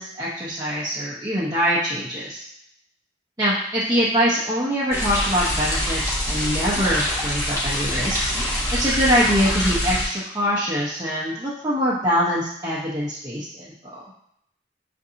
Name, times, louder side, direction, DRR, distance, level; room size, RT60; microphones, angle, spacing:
voice 1, 0.0-2.4 3.4-8.3 8.7-14.0, equal, 20° right, -9 dB, 0.6 m, -23 dB
sound 1, 4.9-10.0, left 1 dB, 20° left, 1.0 m, -25 dB
5.9 x 2.6 x 2.7 m, 0.76 s
head